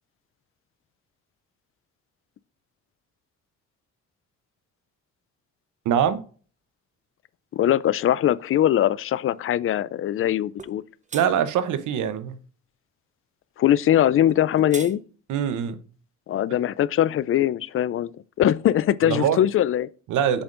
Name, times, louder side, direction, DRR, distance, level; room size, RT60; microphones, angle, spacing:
voice 1, 5.8-6.2 11.1-12.4 15.3-15.8 19.0-19.4 20.1-20.4, right 8 dB, 80° right, 0.8 m, -23 dB
voice 2, 7.5-10.8 13.6-15.0 16.3-18.1 18.4-19.9, left 11 dB, 45° left, 0.4 m, -21 dB
sound 1, 10.6-10.8 11.1-11.3 14.3-14.9, right 5 dB, 25° right, 0.7 m, -37 dB
7.0 x 5.2 x 2.5 m
cardioid pair, 90°, 30 cm